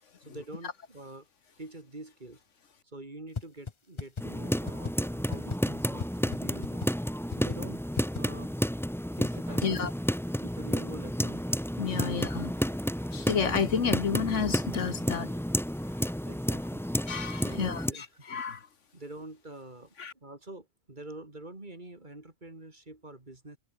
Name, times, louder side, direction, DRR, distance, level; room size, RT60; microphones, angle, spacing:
voice 1, 0.2-1.3 1.6-2.4 2.8-6.9 7.3-7.8 8.1-8.6 9.2-9.9 10.4-11.7 12.1-12.2 16.2-16.9 17.4-18.2 18.9-23.6, right 2 dB, 35° right, 3.3 m, -46 dB
sound 1, 3.4-3.5 3.7-3.8 4.0-4.2 4.7-4.9 5.3-5.6 6.0-6.1 6.3-6.4 6.6-6.9 7.3-7.6 8.0-8.2, left 5 dB, 30° left, 0.6 m, -33 dB
sound 2, 4.2-17.9, equal, ahead, 2.0 m, -31 dB
voice 2, 11.8-12.5 13.1-15.4 17.1-18.7 20.0-20.1, left 6 dB, 70° left, 1.6 m, -31 dB
omnidirectional pair, 1.3 m